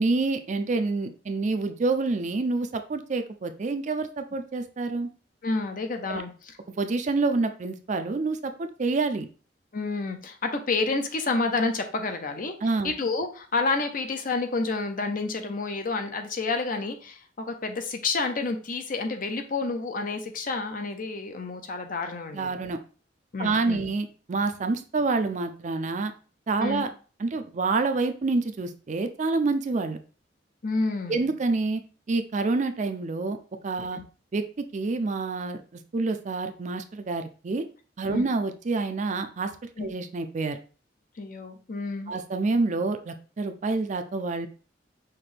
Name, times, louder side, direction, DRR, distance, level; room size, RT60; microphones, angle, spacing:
voice 1, 0.0-5.1 6.1-6.2 6.8-9.3 12.6-12.9 22.3-22.8 23.4-26.1 26.5-26.9 27.2-30.0 31.1-31.8 32.1-33.4 33.6-34.0 34.3-35.6 35.9-37.6 38.0-39.5 39.8-40.6 42.1-44.5, right 3 dB, 40° right, 8 dB, 0.4 m, -27 dB
voice 2, 5.4-6.6 9.7-12.5 12.8-22.5 23.3-23.9 26.6-26.9 30.6-31.3 33.9-34.0 38.1-38.3 39.8-39.9 41.2-42.1, left 3 dB, 50° left, 6 dB, 0.6 m, -29 dB
5.8 x 2.6 x 3.3 m, 0.38 s
head